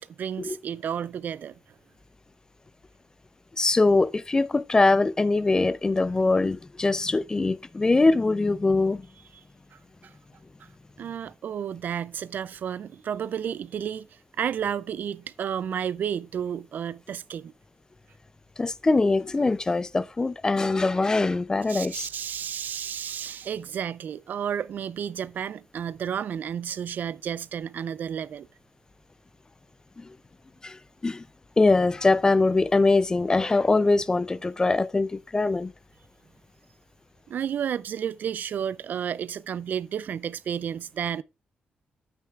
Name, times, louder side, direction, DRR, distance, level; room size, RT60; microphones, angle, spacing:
voice 1, 0.0-1.6 9.7-10.1 11.0-14.1 14.4-17.5 21.7-28.5 37.3-41.2, right 8 dB, 60° right, 0.3 m, -32 dB
voice 2, 3.6-9.1 18.6-22.1 30.0-30.2 30.6-31.2 31.6-35.7, left 3 dB, 20° left, 0.3 m, -22 dB
9.5 x 8.7 x 2.4 m
cardioid pair, 115°, 3 cm